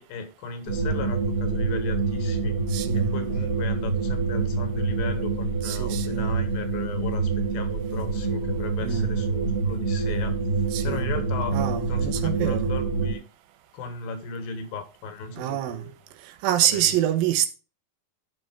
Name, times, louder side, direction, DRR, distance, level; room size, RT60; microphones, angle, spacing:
voice 1, 0.0-2.5 2.9-10.4 10.8-11.5 11.9-13.2 13.7-15.9 16.7-16.9, left 5 dB, 80° left, 3.2 m, -36 dB
sound 1, 0.7-13.1, right 4 dB, 45° right, 3.2 m, -26 dB
voice 2, 2.7-3.2 5.6-6.3 8.8-9.2 10.7-11.2 11.5-12.7 15.4-15.8 16.4-17.5, right 12 dB, 85° right, 2.8 m, -26 dB
11.5 x 5.3 x 3.7 m
omnidirectional pair, 4.1 m